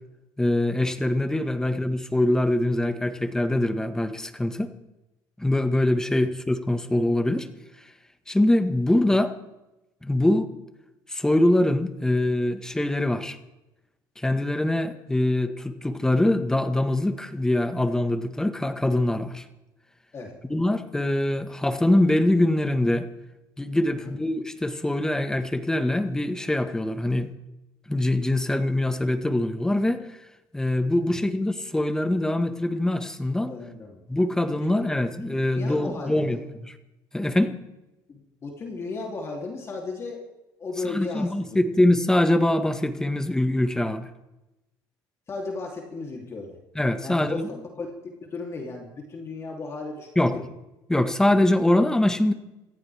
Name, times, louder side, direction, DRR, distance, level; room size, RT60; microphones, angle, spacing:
voice 1, 0.4-4.7 5.4-7.5 8.3-9.4 10.0-10.5 11.1-13.4 14.2-19.4 20.5-23.1 23.6-27.3 27.9-30.1 30.5-33.5 34.1-36.7 37.1-37.5 40.8-44.1 46.7-47.5 50.1-50.4 50.9-52.3, left 1 dB, 5° left, 8 dB, 1.6 m, -23 dB
voice 2, 33.5-34.0 34.6-34.8 35.2-36.4 38.1-40.2 40.6-41.6 45.3-46.6 47.0-50.4, left 3 dB, 35° left, -1 dB, 3.3 m, -35 dB
27.0 x 14.5 x 3.6 m, 0.97 s
cardioid pair, 110°, 8 cm